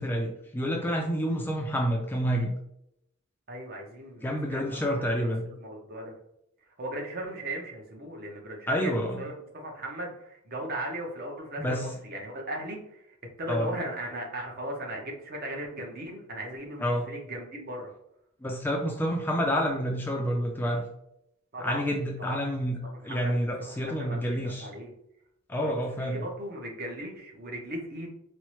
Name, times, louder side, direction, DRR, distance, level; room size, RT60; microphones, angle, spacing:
voice 1, 0.0-2.5 4.2-5.4 8.7-9.2 11.6-11.9 13.5-13.7 16.8-17.0 18.4-20.8 21.6-22.8 23.0-24.7 25.5-26.2, equal, 10° left, 0 dB, 0.3 m, -28 dB
voice 2, 3.5-6.2 6.8-17.9 21.5-21.8 22.2-22.5 22.9-24.9 25.6-28.1, right 1 dB, 45° right, 1 dB, 0.7 m, -38 dB
4.2 x 2.0 x 3.0 m, 0.77 s
head